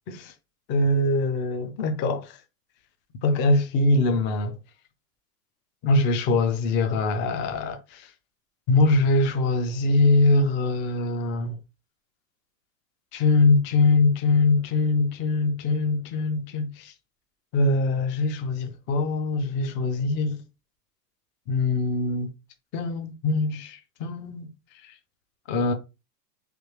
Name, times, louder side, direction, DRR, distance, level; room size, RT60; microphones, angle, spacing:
voice 1, 0.7-2.4 3.1-4.6 5.8-8.1 8.7-11.6 13.1-16.9 17.5-20.4 21.5-22.3 22.7-24.5 24.8-24.9 25.5-25.7, left 2 dB, 25° left, 0.5 m, -23 dB
3.3 x 2.4 x 3.1 m
hypercardioid pair, 120°, 49 cm